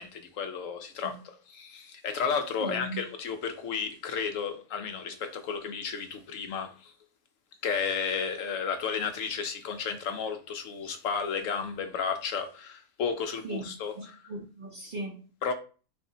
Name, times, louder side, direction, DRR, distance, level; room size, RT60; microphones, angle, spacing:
voice 1, 0.0-6.9 7.6-14.2 15.4-15.5, left 6 dB, 70° left, 0.9 m, -33 dB
voice 2, 2.6-3.0 13.4-13.7 13.9-15.3, right 1 dB, 45° right, 0.7 m, -38 dB
6.6 x 2.6 x 2.7 m
omnidirectional pair, 1.6 m